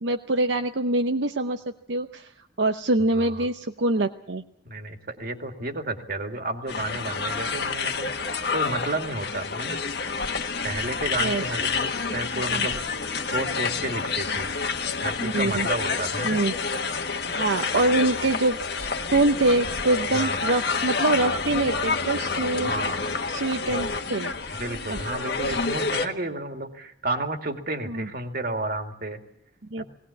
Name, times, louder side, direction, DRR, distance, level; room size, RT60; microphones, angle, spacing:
voice 1, 0.0-1.6 1.9-2.3 2.6-4.4 11.2-11.4 12.5-12.7 15.2-15.7 16.2-16.5 17.4-18.6 19.1-22.7 23.3-24.3 24.9-25.0 27.9-28.1 29.7-29.8, right 2 dB, 80° right, 6 dB, 0.8 m, -24 dB
voice 2, 3.2-3.5 4.7-8.1 8.5-9.8 10.6-12.7 13.3-14.5 15.0-16.4 20.1-20.4 22.6-23.0 23.7-23.8 24.6-29.2 29.8-29.9, right 2 dB, 50° right, 5 dB, 2.3 m, -31 dB
sound 1, 6.7-26.1, left 4 dB, 60° left, 1.5 m, -28 dB
19.5 x 18.5 x 8.5 m, 0.68 s
head